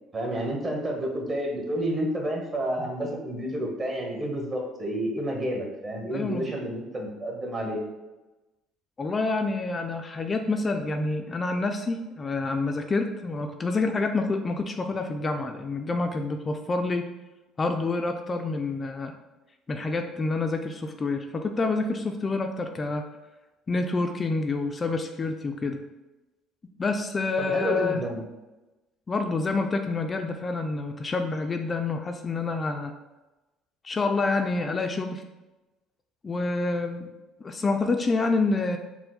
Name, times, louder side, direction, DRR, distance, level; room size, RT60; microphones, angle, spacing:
voice 1, 0.1-7.8 27.4-28.2, right 1 dB, 35° right, 0 dB, 1.1 m, -30 dB
voice 2, 6.1-6.4 9.0-17.1 17.6-19.2 19.7-23.0 23.7-25.8 26.8-28.0 29.1-32.9 33.8-35.2 36.2-37.1 37.4-38.8, left 3 dB, 30° left, 5 dB, 0.3 m, -27 dB
4.3 x 2.1 x 4.0 m, 1.1 s
supercardioid pair, 85°, 0 cm